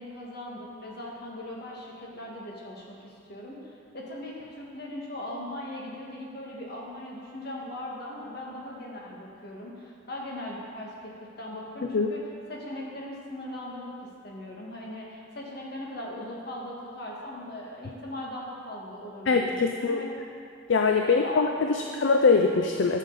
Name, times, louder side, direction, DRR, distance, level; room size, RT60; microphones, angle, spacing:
voice 1, 0.0-11.1 11.4-12.2 12.5-13.9 14.2-20.1 21.0-22.0, left 1 dB, 55° left, -3 dB, 1.7 m, -39 dB
voice 2, 19.3-20.0 20.7-23.0, left 4 dB, 70° left, 3 dB, 0.5 m, -23 dB
11.0 x 7.4 x 4.1 m, 2.4 s
head